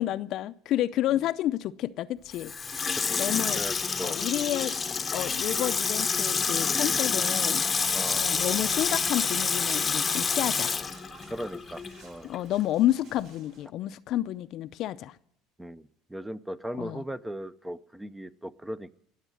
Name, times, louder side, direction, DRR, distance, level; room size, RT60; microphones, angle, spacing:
voice 1, 0.0-2.5 3.2-3.6 4.0-4.7 5.1-7.6 8.2-10.7 12.2-15.2 16.8-17.0, left 13 dB, 60° left, 13 dB, 0.5 m, -30 dB
Water tap faucet / Sink (filling or washing), 2.3-12.0 12.3-12.4, left 5 dB, 25° left, 0.8 m, -28 dB
voice 2, 2.9-4.2 7.9-8.3 11.3-12.3 15.6-18.9, right 1 dB, 10° right, 15 dB, 0.6 m, -38 dB
sound 1, 8.3-13.7, right 4 dB, 65° right, 2.2 m, -54 dB
19.0 x 7.3 x 9.2 m, 0.72 s
supercardioid pair, 90°, 0 cm